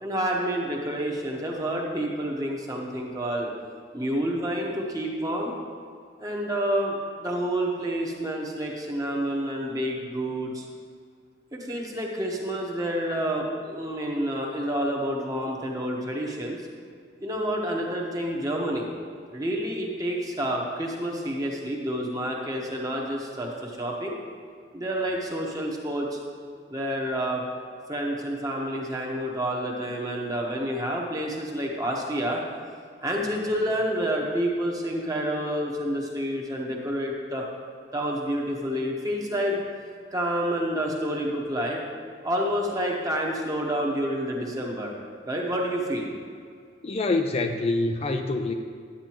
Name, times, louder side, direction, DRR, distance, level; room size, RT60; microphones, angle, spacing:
voice 1, 0.0-3.5 3.9-5.5 6.2-7.0 7.2-10.6 11.5-16.6 17.2-18.9 19.3-24.2 24.7-26.2 26.7-27.4 27.9-32.4 33.0-37.4 37.9-39.6 40.1-41.8 42.2-44.9 45.3-46.1, equal, 20° right, -1 dB, 1.2 m, -29 dB
voice 2, 46.8-48.5, left 2 dB, 35° left, 5 dB, 0.4 m, -25 dB
10.0 x 8.8 x 3.0 m, 2.2 s
head